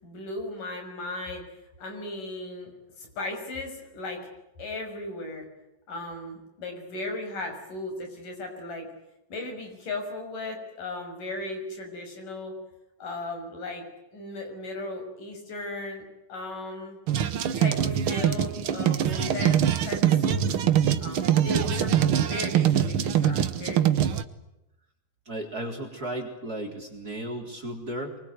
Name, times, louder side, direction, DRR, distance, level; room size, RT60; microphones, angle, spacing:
voice 1, 0.0-1.4 1.8-2.7 3.0-4.3 4.6-5.5 5.9-8.9 9.3-12.5 13.0-17.0 17.6-20.4 21.0-24.3, left 2 dB, 65° left, 5 dB, 7.6 m, -36 dB
Ugandan song and drums, 17.1-24.2, right 9 dB, 65° right, 1.3 m, -23 dB
voice 2, 25.3-28.2, right 1 dB, 25° right, 4 dB, 4.2 m, -34 dB
26.0 x 24.5 x 9.4 m, 0.90 s
omnidirectional pair, 4.1 m